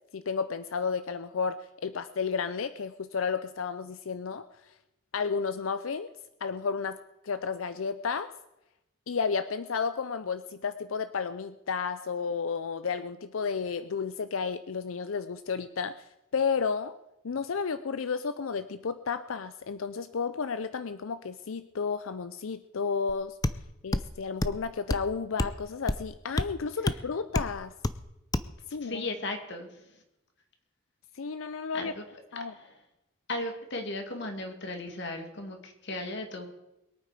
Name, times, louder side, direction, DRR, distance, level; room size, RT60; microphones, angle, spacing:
voice 1, 0.1-4.4 5.1-6.1 6.4-7.0 7.2-8.3 9.1-16.0 16.3-16.9 17.2-23.4 23.8-27.7 28.7-29.1 31.2-31.9 32.3-32.5, left 5 dB, 75° left, 12 dB, 0.5 m, -32 dB
sound 1, 23.1-23.2 23.4-23.6 23.9-24.1 24.4-24.6 24.9-25.1 25.4-25.6 25.9-26.0 26.4-26.5 26.9-27.0 27.3-27.5 27.8-28.0 28.3-28.5, left 2 dB, 20° left, 0.5 m, -28 dB
voice 2, 28.8-30.0 31.7-32.0 32.5-32.8 33.3-36.5, left 2 dB, 55° left, 4 dB, 2.4 m, -36 dB
22.0 x 8.9 x 5.0 m, 0.90 s
head